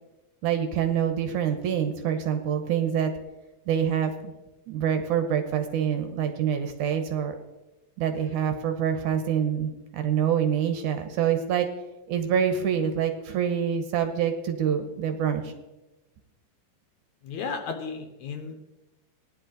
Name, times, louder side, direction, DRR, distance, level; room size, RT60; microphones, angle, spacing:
voice 1, 0.4-3.1 3.7-4.3 4.7-7.4 8.0-11.7 12.1-15.5, right 8 dB, 70° right, 7 dB, 2.2 m, -26 dB
voice 2, 17.2-18.7, left 5 dB, 70° left, 5 dB, 2.0 m, -34 dB
16.5 x 10.5 x 3.9 m, 1.0 s
omnidirectional pair, 4.0 m